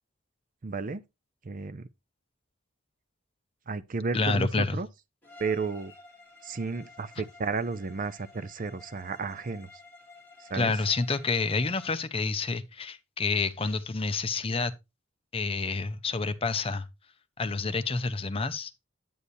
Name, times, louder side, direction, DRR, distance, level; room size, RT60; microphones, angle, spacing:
voice 1, 0.6-1.0 1.4-1.9 3.7-4.9 5.4-5.9 6.4-9.7 10.4-10.7, right 4 dB, 40° right, 0.5 m, -33 dB
voice 2, 4.1-4.8 10.5-14.7 15.3-16.9 17.4-18.7, left 4 dB, 25° left, 0.6 m, -28 dB
Bowed string instrument, 5.2-12.0, left 3 dB, 10° left, 2.9 m, -52 dB
9.4 x 8.4 x 2.6 m
head